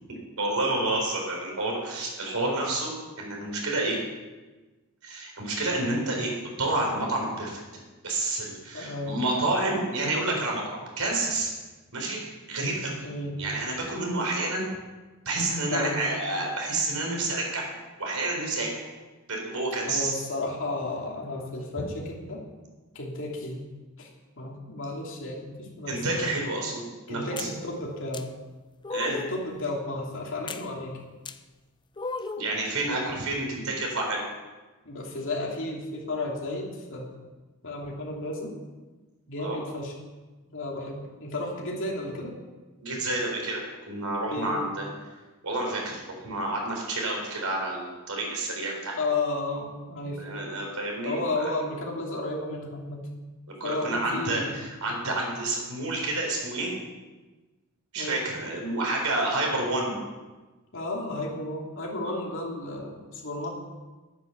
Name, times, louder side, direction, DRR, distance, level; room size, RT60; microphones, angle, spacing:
voice 1, 0.4-2.9 3.2-4.0 5.0-6.3 6.6-7.6 8.0-11.5 11.9-12.2 12.5-12.9 13.4-14.7 15.3-17.7 18.0-18.7 19.3-20.1 25.9-27.5 28.9-29.2 32.4-34.2 39.4-39.6 42.8-44.9 45.4-48.9 50.2-51.5 53.6-56.7 57.9-60.0 62.0-62.2, right 2 dB, 80° right, 0 dB, 4.2 m, -29 dB
voice 2, 8.7-9.2 13.0-13.3 15.7-16.1 19.9-22.4 22.9-23.7 24.0-24.1 24.4-26.0 27.1-28.3 29.1-31.0 34.8-37.1 37.6-38.5 39.3-39.9 40.5-42.3 44.3-44.6 49.0-50.2 51.0-53.0 53.6-54.6 58.0-58.3 60.7-63.5, left 2 dB, 60° left, -2 dB, 2.9 m, -33 dB
sound 1, 27.4-27.5 28.1-28.2 28.8-29.4 30.5-30.6 31.2-31.4 32.0-32.5, left 3 dB, 20° left, 0.5 m, -34 dB
11.5 x 9.5 x 6.8 m, 1.2 s
head